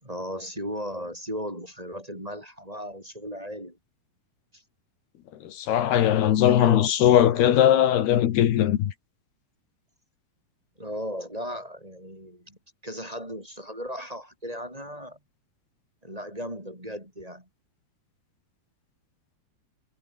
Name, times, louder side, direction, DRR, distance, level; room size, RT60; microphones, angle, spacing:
voice 1, 0.0-3.8 4.5-4.6 6.2-7.8 10.8-15.2 16.0-17.5, equal, 10° right, 7.0 m, -37 dB
voice 2, 5.5-8.9, left 11 dB, 75° left, 3.7 m, -20 dB
omnidirectional pair, 4.6 m